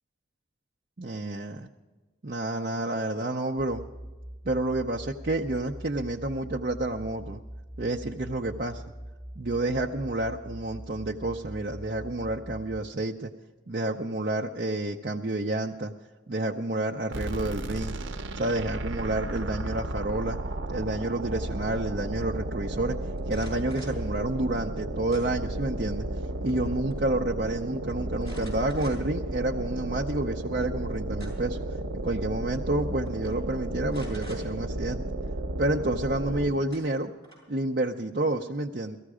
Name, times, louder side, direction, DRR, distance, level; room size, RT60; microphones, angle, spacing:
voice 1, 1.0-1.7 2.2-3.8 4.4-7.4 7.8-8.8 9.4-13.3 13.7-15.9 16.3-18.0 18.3-20.4 20.7-23.0 23.3-26.1 26.4-35.0 35.6-37.1 37.5-39.0, right 2 dB, 50° right, 1 dB, 0.6 m, -29 dB
sound 1, 3.7-12.8, equal, 10° right, 1.4 m, -43 dB
sound 2, 17.1-36.7, right 1 dB, 90° right, 0.8 m, -33 dB
sound 3, 23.2-24.0 25.1-25.7 26.1-26.6 26.9-27.0 28.2-29.2 29.8-29.9 30.9-31.6 32.6-32.8 33.1-33.3 33.9-34.4 36.2-36.3 36.7-37.6, right 1 dB, 20° left, 7.0 m, -48 dB
18.5 x 14.5 x 4.9 m, 1.3 s
head